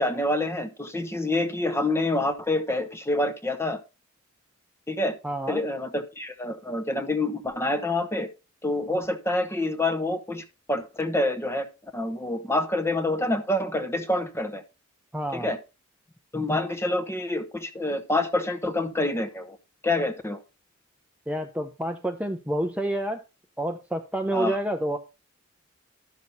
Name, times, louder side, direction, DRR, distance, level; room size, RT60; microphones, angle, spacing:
voice 1, 0.0-3.8 4.9-5.2 5.5-8.3 8.6-11.7 11.9-14.6 15.3-15.6 16.3-19.6 19.8-20.4 24.3-24.6, left 2 dB, 10° left, 1.0 m, -27 dB
voice 2, 5.2-5.6 15.1-15.5 21.3-23.2 23.6-25.0, right 1 dB, 5° right, 0.6 m, -28 dB
12.0 x 6.3 x 4.0 m
head